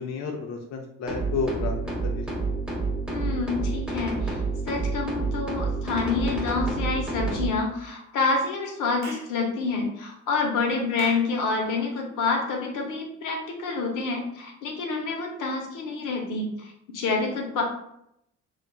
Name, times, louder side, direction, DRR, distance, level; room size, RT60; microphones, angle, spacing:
voice 1, 0.0-2.4, left 4 dB, 60° left, 2 dB, 0.4 m, -32 dB
sound 1, 1.1-7.5, right 3 dB, 5° right, 0.5 m, -29 dB
voice 2, 3.1-17.6, left 4 dB, 90° left, 1 dB, 0.8 m, -28 dB
Clapping / Chirp tweet, 9.0-9.3 11.0-11.3, right 3 dB, 65° right, 0.9 m, -39 dB
3.1 x 2.4 x 2.2 m, 0.76 s
cardioid pair, 120°, 31 cm